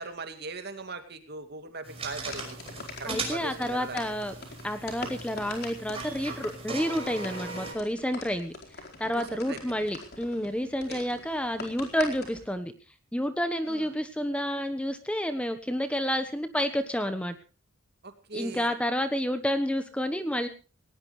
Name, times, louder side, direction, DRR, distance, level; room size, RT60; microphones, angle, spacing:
voice 1, 0.0-2.6 3.0-4.0 9.2-9.8 10.9-11.0 13.7-13.9 18.0-18.7, right 3 dB, 50° right, 7 dB, 2.6 m, -40 dB
sound 1, 1.8-7.7, right 3 dB, 30° right, 5.7 m, -39 dB
sound 2, 2.1-12.5, left 3 dB, 50° left, 4.5 m, -44 dB
voice 2, 3.1-4.3 4.6-8.5 9.0-12.7 13.1-17.3 18.3-20.5, equal, 5° left, 9 dB, 1.1 m, -30 dB
19.0 x 18.5 x 3.2 m, 0.33 s
head